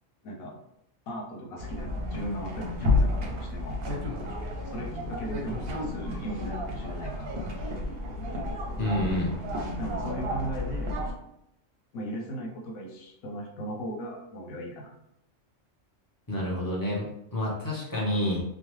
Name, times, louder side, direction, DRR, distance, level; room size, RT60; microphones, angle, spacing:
voice 1, 0.2-0.6 1.1-3.8 4.6-7.4 9.8-10.9 11.9-14.9, right 1 dB, 90° left, -1 dB, 1.2 m, -37 dB
sound 1, 1.6-11.1, left 2 dB, 55° right, 0.7 m, -31 dB
voice 2, 8.8-9.3 16.3-18.4, left 1 dB, 25° left, -5 dB, 0.5 m, -29 dB
3.0 x 2.1 x 3.0 m, 0.79 s
omnidirectional pair, 1.4 m